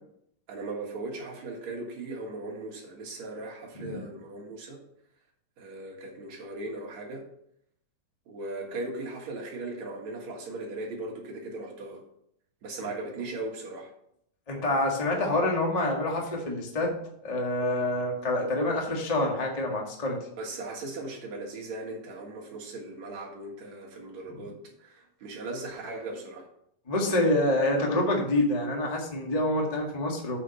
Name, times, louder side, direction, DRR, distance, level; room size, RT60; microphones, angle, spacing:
voice 1, 0.5-4.8 5.6-7.3 8.3-12.0 12.6-13.9 20.4-26.5, right 2 dB, 60° right, -2 dB, 2.7 m, -38 dB
voice 2, 14.5-17.0 17.2-20.2 26.9-30.4, left 1 dB, 35° left, -1 dB, 0.6 m, -27 dB
8.4 x 5.2 x 5.4 m, 0.72 s
omnidirectional pair, 3.9 m